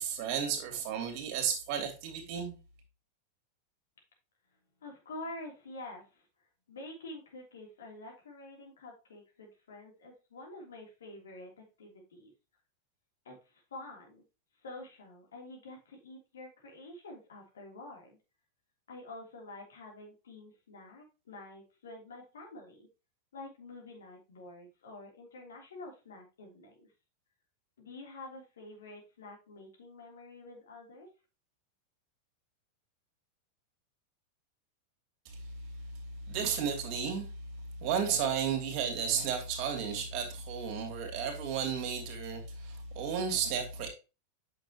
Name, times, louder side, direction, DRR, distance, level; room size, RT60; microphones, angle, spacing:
voice 1, 0.0-2.5 35.2-35.4 36.3-37.3 37.8-43.9, right 7 dB, 45° right, 2.8 m, -33 dB
voice 2, 4.8-6.2 6.7-12.3 13.2-14.2 14.6-18.2 18.9-22.9 23.3-26.9 27.8-31.1, left 2 dB, 65° left, 3.3 m, -48 dB
8.9 x 6.5 x 3.0 m
figure-of-eight pair, 90°, 0 cm